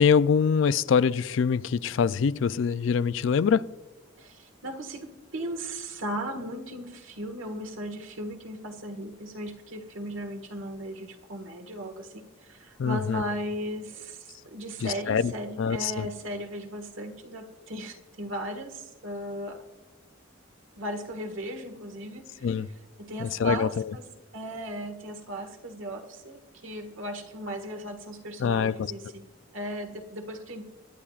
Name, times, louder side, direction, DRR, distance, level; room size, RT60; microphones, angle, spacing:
voice 1, 0.0-3.7 12.8-13.2 14.8-15.3 15.6-16.1 22.4-22.7 23.2-23.9 28.4-28.9, left 6 dB, 65° left, 0.4 m, -24 dB
voice 2, 4.2-19.7 20.8-22.3 23.0-24.1 24.3-29.3 29.5-30.7, right 1 dB, 70° right, 1.6 m, -37 dB
23.5 x 9.9 x 2.4 m
head